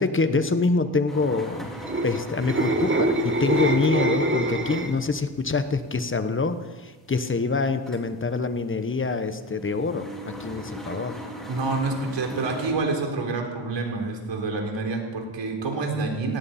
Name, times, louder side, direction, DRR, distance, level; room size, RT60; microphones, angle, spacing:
voice 1, 0.0-1.7 2.0-11.2, left 3 dB, 25° left, 10 dB, 1.1 m, -25 dB
sound 1, 1.1-12.7, equal, ahead, 4.5 m, -40 dB
sound 2, 1.7-5.1 5.5-5.8, right 2 dB, 25° right, 1.5 m, -24 dB
voice 2, 11.5-16.4, right 3 dB, 60° right, 2 dB, 3.8 m, -27 dB
18.5 x 17.0 x 4.4 m, 1.3 s
cardioid pair, 90°, 49 cm